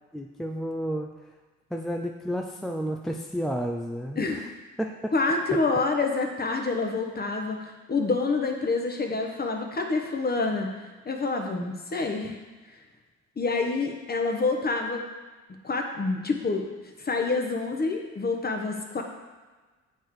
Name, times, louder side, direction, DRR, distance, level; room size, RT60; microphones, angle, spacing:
voice 1, 0.1-1.1 1.7-4.2 4.8-5.1, equal, ahead, 2 dB, 0.4 m, -31 dB
voice 2, 5.1-7.6 7.9-10.7 11.0-12.4 13.4-15.0 15.6-16.7 17.0-19.0, left 3 dB, 30° left, 3 dB, 1.2 m, -27 dB
7.8 x 4.6 x 4.7 m, 1.3 s
cardioid pair, 90°, 30 cm